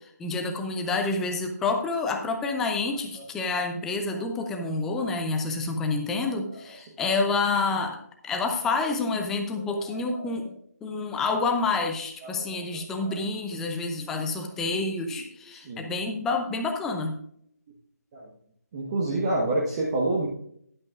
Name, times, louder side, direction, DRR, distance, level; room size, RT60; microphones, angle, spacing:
voice 1, 0.0-8.0 8.2-10.5 10.8-17.2, left 3 dB, 5° left, 4 dB, 0.6 m, -28 dB
voice 2, 9.9-10.3 12.2-12.5 12.7-13.2 15.6-15.9 18.1-18.3 18.7-20.3, right 2 dB, 20° right, -2 dB, 1.3 m, -28 dB
11.5 x 11.0 x 2.4 m, 0.66 s
figure-of-eight pair, 160°, 9 cm